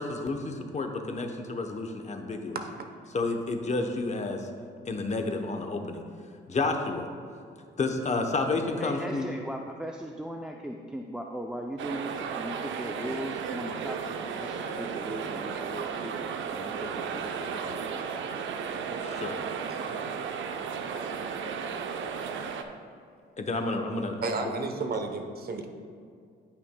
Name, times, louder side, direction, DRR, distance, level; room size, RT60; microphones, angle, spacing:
voice 1, 0.0-2.6 3.1-4.5 4.8-6.0 6.5-7.1 7.8-9.3 19.0-19.4 23.4-24.2, left 3 dB, 35° left, 4 dB, 0.8 m, -30 dB
voice 2, 2.5-2.9 19.7-19.8 24.2-25.7, right 3 dB, 50° right, 5 dB, 0.9 m, -32 dB
voice 3, 8.8-17.9, right 1 dB, 5° right, 2 dB, 0.4 m, -39 dB
sound 1, 11.8-22.6, right 6 dB, 75° right, 0.6 m, -34 dB
14.0 x 5.9 x 2.2 m, 2.3 s
cardioid pair, 90°, 20 cm